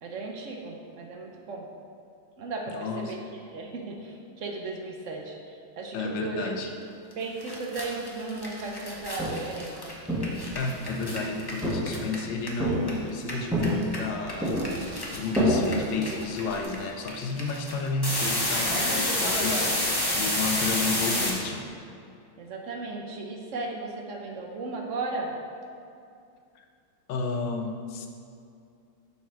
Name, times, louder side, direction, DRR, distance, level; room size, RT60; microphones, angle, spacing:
voice 1, 0.0-1.7 2.4-3.2 3.5-5.4 5.8-6.5 7.2-9.9 21.0-21.2 22.4-25.3, right 3 dB, 70° right, 0 dB, 0.7 m, -35 dB
voice 2, 2.7-3.2 5.9-6.7 10.5-14.7 15.1-21.6 27.1-28.1, left 3 dB, 70° left, 4 dB, 1.3 m, -32 dB
sound 1, 7.1-7.2 7.4-12.9 13.2-21.3, left 1 dB, 25° left, 0.5 m, -29 dB
Walk footsteps, 8.9-9.6 10.1-11.1 11.6-12.2 12.6-13.1 13.5-14.1 14.4-16.6, equal, ahead, 1.5 m, -28 dB
Fixed-wing aircraft airplane, 13.2-19.7, left 1 dB, 40° left, 0.9 m, -39 dB
7.2 x 4.2 x 6.0 m, 2.4 s
omnidirectional pair, 2.2 m